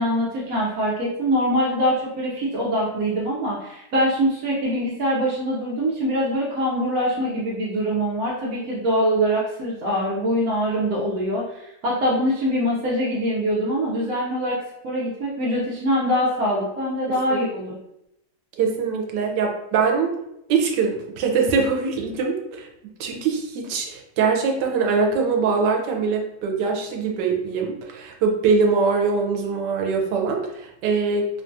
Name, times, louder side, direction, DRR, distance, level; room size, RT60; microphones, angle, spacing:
voice 1, 0.0-17.8, equal, 70° right, -6 dB, 1.0 m, -23 dB
voice 2, 17.1-17.4 18.6-20.1 20.5-22.7 23.0-31.3, right 5 dB, 85° right, 2 dB, 1.2 m, -23 dB
3.0 x 2.3 x 2.5 m, 0.83 s
omnidirectional pair, 1.8 m